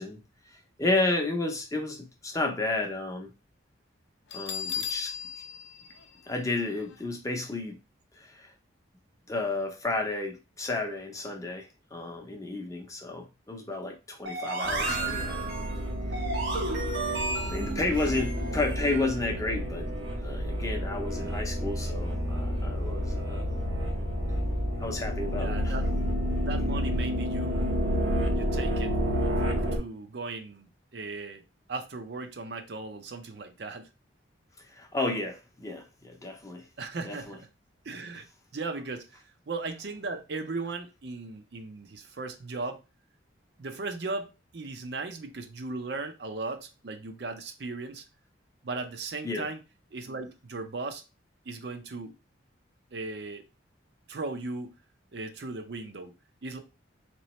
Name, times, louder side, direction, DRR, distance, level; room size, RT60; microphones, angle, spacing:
voice 1, 0.0-3.3 4.3-5.1 6.3-7.8 8.1-8.5 9.3-15.6 17.4-19.9 20.2-23.5 24.8-25.7 34.6-36.7 37.0-37.4 49.2-49.5, left 2 dB, 15° left, 0.6 m, -32 dB
Bell, 4.3-7.0, left 7 dB, 65° left, 0.5 m, -36 dB
sound 1, 14.2-19.2, right 2 dB, 70° right, 1.4 m, -33 dB
sound 2, 14.6-29.8, equal, 90° right, 0.9 m, -30 dB
voice 2, 25.4-25.9 26.4-27.8 28.3-29.0 29.4-31.4 31.7-33.9 36.8-37.5 37.8-38.3 38.5-42.8 43.6-48.1 48.6-49.6 49.9-51.0 51.5-52.1 52.9-53.5 54.1-54.8 55.1-56.1 56.4-56.6, right 3 dB, 55° right, 0.5 m, -37 dB
3.9 x 3.0 x 3.0 m
head